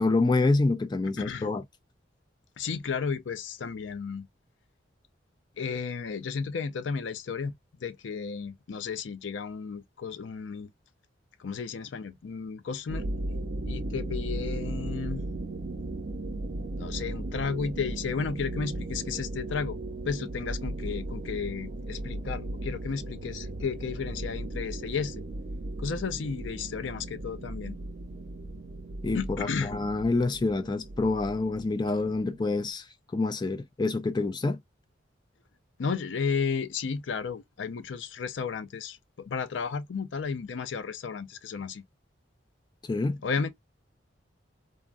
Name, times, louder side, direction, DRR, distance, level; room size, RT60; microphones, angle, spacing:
voice 1, 0.0-1.6 29.0-32.9 33.1-34.6 42.9-43.2, left 3 dB, 25° left, 0.3 m, -27 dB
voice 2, 1.2-1.5 2.6-4.3 5.6-7.5 7.8-10.7 11.4-13.0 13.6-15.2 16.8-19.8 20.0-25.2 25.8-27.8 29.1-29.7 35.8-41.8 43.2-43.5, left 5 dB, 80° left, 0.5 m, -33 dB
sound 1, 12.9-32.7, right 2 dB, 55° right, 0.7 m, -36 dB
3.4 x 2.0 x 2.4 m
head